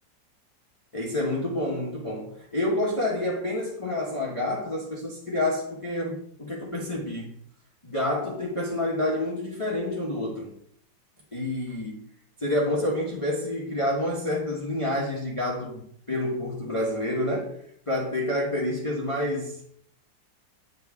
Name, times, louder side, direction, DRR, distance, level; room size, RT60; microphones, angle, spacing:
voice 1, 0.9-7.4 7.8-10.6 11.3-12.1 12.4-17.6 17.9-19.6, left 1 dB, 25° left, 0.9 m, -28 dB
8.9 x 3.1 x 3.4 m
omnidirectional pair, 1.9 m